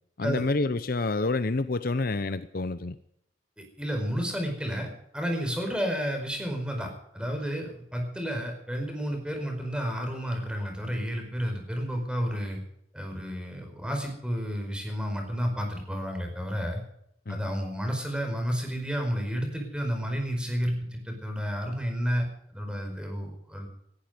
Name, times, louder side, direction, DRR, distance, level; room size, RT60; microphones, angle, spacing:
voice 1, 0.2-3.0 17.3-17.4, left 3 dB, 55° left, 13 dB, 0.8 m, -28 dB
voice 2, 3.6-12.6 12.9-16.8 17.3-23.7, equal, 5° right, 3 dB, 4.8 m, -31 dB
17.5 x 15.0 x 5.2 m, 0.72 s
head